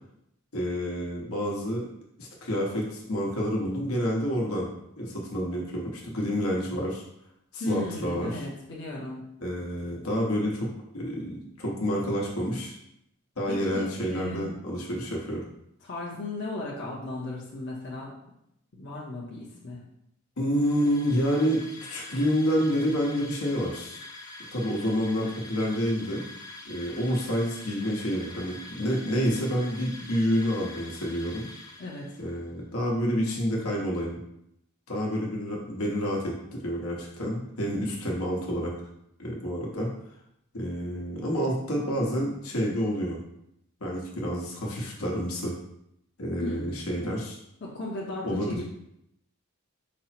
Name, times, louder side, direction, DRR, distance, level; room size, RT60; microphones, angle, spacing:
voice 1, 0.5-1.9 2.2-4.7 5.0-7.0 7.5-8.4 9.4-12.7 13.4-15.4 20.4-24.0 24.5-26.2 26.6-31.4 32.2-34.2 34.9-38.7 39.2-39.9 40.5-43.2 43.8-45.6 46.2-47.4 48.2-48.6, equal, 80° left, -2 dB, 1.1 m, -28 dB
voice 2, 7.6-9.2 13.5-14.5 15.8-18.1 18.8-19.8 31.8-32.1 46.4-46.7 47.6-48.6, left 2 dB, 50° left, -5 dB, 0.8 m, -36 dB
sound 1, 20.5-32.4, left 2 dB, 15° left, 0.4 m, -45 dB
5.2 x 2.0 x 4.3 m, 0.78 s
head